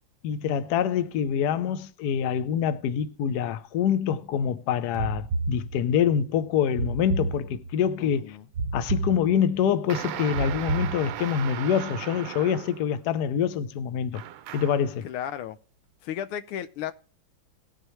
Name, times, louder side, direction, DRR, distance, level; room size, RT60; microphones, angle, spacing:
voice 1, 0.2-8.4 8.7-14.2 14.5-15.1, left 8 dB, 70° left, 1.0 m, -25 dB
sound 1, 4.9-6.1 6.8-7.9 8.5-9.7 10.3-11.5, right 3 dB, 60° right, 1.1 m, -31 dB
voice 2, 8.0-8.5 15.0-15.6 16.0-16.9, left 10 dB, 90° left, 1.6 m, -34 dB
sound 2, 9.9-12.9 14.1-14.9, right 12 dB, 80° right, 1.4 m, -36 dB
18.5 x 6.7 x 3.1 m
omnidirectional pair, 2.4 m